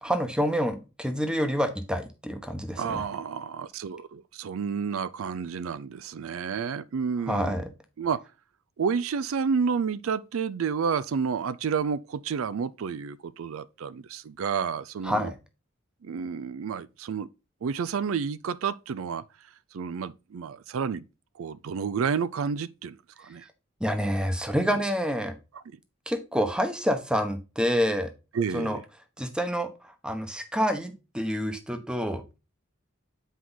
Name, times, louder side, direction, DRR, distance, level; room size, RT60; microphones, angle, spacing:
voice 1, 0.0-3.0 7.3-7.7 15.0-15.4 23.8-25.3 26.1-28.1 28.5-28.8 29.2-32.4, equal, 5° right, 0.9 m, -28 dB
voice 2, 2.8-7.6 8.0-8.2 8.8-15.3 16.0-17.3 17.6-19.2 19.7-21.0 21.4-23.5 24.7-24.8 25.5-25.6 28.3-28.8, right 6 dB, 85° right, 0.4 m, -30 dB
8.0 x 4.6 x 3.9 m
head